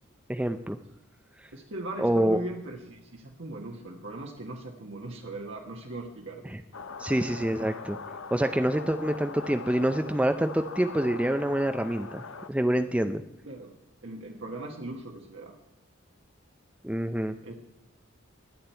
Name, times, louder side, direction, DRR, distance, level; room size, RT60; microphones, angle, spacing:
voice 1, 0.3-0.8 1.4-1.5 2.0-2.4 6.4-6.6 7.0-8.0 8.3-13.2 16.8-17.4, right 1 dB, 5° right, 7 dB, 0.4 m, -26 dB
voice 2, 1.5-6.4 13.4-15.6 17.4-17.5, right 2 dB, 65° right, -1 dB, 1.4 m, -39 dB
sound 1, 6.7-12.5, left 4 dB, 75° left, 0.9 m, -41 dB
22.5 x 8.8 x 4.5 m, 0.90 s
head